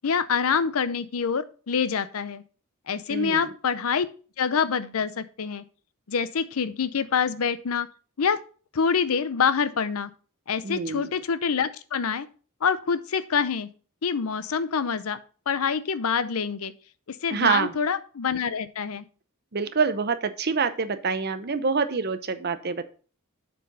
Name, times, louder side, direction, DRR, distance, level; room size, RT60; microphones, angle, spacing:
voice 1, 0.0-2.4 2.9-4.1 4.4-5.6 6.1-7.9 8.2-8.4 8.7-10.1 10.5-12.3 12.6-13.7 14.0-15.2 15.5-16.7 17.1-19.0, left 6 dB, 80° left, 15 dB, 0.6 m, -26 dB
voice 2, 3.1-3.5 10.6-11.1 17.3-17.7 19.5-22.9, right 5 dB, 45° right, 11 dB, 0.7 m, -26 dB
7.5 x 4.6 x 5.2 m, 0.39 s
head